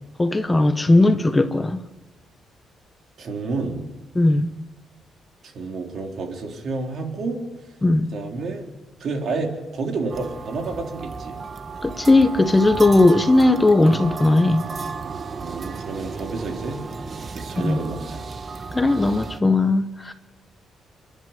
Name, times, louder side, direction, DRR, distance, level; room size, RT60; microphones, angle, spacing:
voice 1, 0.2-1.8 4.1-4.5 7.8-8.1 11.8-14.6 17.6-17.8 18.7-20.1, left 2 dB, 15° left, 0.9 m, -17 dB
voice 2, 3.2-3.8 5.4-7.4 8.1-8.6 9.0-11.4 15.4-16.8 17.3-18.3, right 3 dB, 50° right, 3.9 m, -29 dB
sound 1, 10.1-19.4, right 4 dB, 30° right, 1.0 m, -34 dB
29.5 x 11.0 x 9.5 m
cardioid pair, 165°, 0 cm